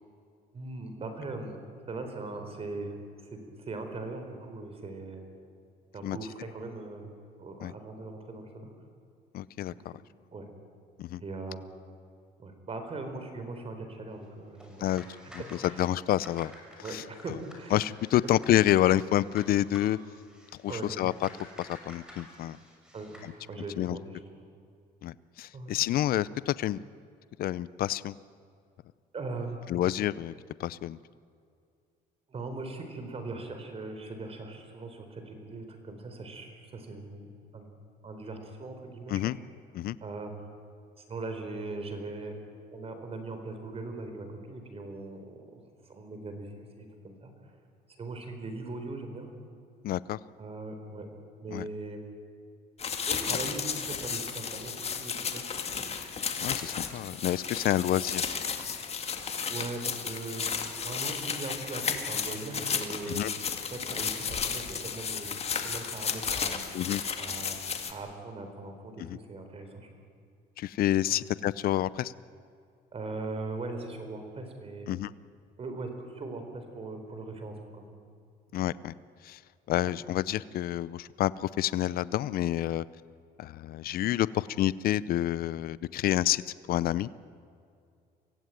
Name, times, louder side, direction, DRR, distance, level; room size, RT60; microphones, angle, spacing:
voice 1, 0.5-1.6 1.9-2.9 3.3-3.4 3.7-5.2 5.9-7.0 7.4-8.7 10.3-10.5 11.2-11.7 12.4-15.2 15.6-15.8 16.8-17.8 20.7-20.9 22.9-23.2 23.5-24.2 25.5-25.7 29.1-29.6 32.3-37.3 37.5-37.7 38.0-39.3 40.0-40.3 41.1-42.4 42.7-45.4 45.9-47.3 48.0-49.3 50.4-51.1 51.4-52.0 53.1-54.7 55.0-55.4 55.8-55.9 59.5-60.5 60.8-63.3 63.7-66.8 67.2-67.6 67.9-69.9 71.1-71.2 72.9-74.9 75.6-77.9 79.8-79.9, right 3 dB, 35° right, 6 dB, 4.1 m, -40 dB
voice 2, 9.3-9.9 11.0-11.2 14.8-15.0 15.3-15.4 15.8-16.5 16.9-17.0 17.7-20.0 20.6-21.1 21.6-22.6 23.8-24.0 25.0-26.8 27.4-28.1 29.7-30.3 30.6-31.0 39.1-39.4 39.7-40.0 49.8-50.2 51.5-51.6 56.4-58.2 63.1-63.3 66.7-67.0 69.0-69.2 70.6-72.1 74.9-75.1 78.5-78.9 79.2-79.4 79.7-82.8 83.4-86.4 86.7-87.1, left 13 dB, 60° left, 18 dB, 0.6 m, -28 dB
sound 1, 14.5-23.3, equal, 5° right, 6.0 m, -51 dB
sound 2, 52.8-67.9, left 6 dB, 40° left, 2.1 m, -33 dB
24.5 x 16.0 x 9.3 m, 2.3 s
cardioid pair, 110°, 17 cm